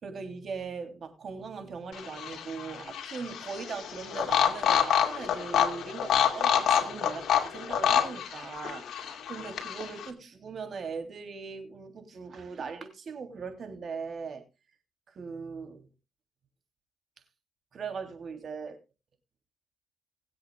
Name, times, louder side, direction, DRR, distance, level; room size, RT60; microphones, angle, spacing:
voice 1, 0.0-14.4 15.1-15.9 17.7-18.8, right 5 dB, 50° right, 3.2 m, -39 dB
sound 1, 1.9-10.1, left 9 dB, 70° left, 2.3 m, -28 dB
21.0 x 7.9 x 2.4 m
cardioid pair, 90°, 0 cm